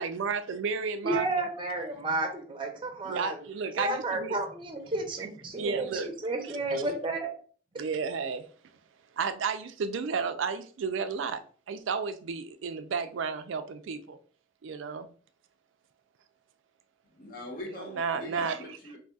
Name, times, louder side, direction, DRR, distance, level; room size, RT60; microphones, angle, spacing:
voice 1, 0.0-1.4 3.0-4.4 5.5-6.1 6.7-6.8 7.8-8.5 9.2-11.4 11.7-14.2 14.6-15.1 17.7-18.6, right 5 dB, 75° right, 0.4 m, -32 dB
voice 2, 1.0-3.5 3.7-7.3, right 2 dB, 25° right, 0.6 m, -32 dB
voice 3, 17.1-19.0, left 2 dB, 50° left, 0.9 m, -42 dB
4.0 x 2.7 x 2.3 m
head